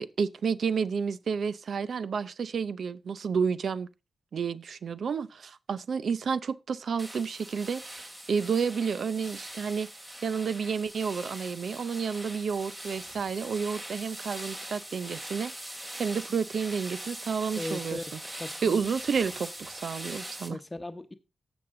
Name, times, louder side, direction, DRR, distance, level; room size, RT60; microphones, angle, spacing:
voice 1, 0.0-3.9 4.3-9.9 10.2-15.5 16.0-18.0 18.6-20.6, right 6 dB, 75° right, 0.5 m, -30 dB
sound 1, 7.0-20.5, right 1 dB, 25° right, 3.0 m, -42 dB
voice 2, 17.5-18.9 20.5-21.1, left 1 dB, 25° left, 1.1 m, -38 dB
13.5 x 7.1 x 3.8 m
supercardioid pair, 40°, 0 cm